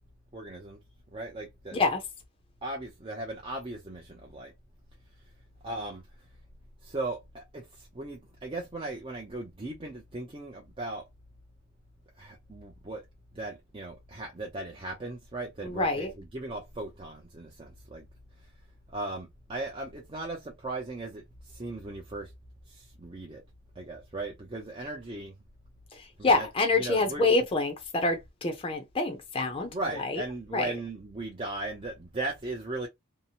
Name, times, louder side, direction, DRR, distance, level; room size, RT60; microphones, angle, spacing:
voice 1, 0.3-0.8 1.1-1.8 2.6-4.5 5.6-6.0 6.8-7.6 7.9-11.1 12.2-13.0 13.3-18.0 18.9-22.3 22.7-23.4 23.8-25.3 26.2-26.5 26.8-27.3 29.6-32.9, right 2 dB, 25° right, 0.5 m, -37 dB
voice 2, 15.6-16.1 26.2-29.7 30.0-30.2 30.5-30.7, left 3 dB, 25° left, 0.5 m, -26 dB
2.8 x 2.0 x 2.7 m
head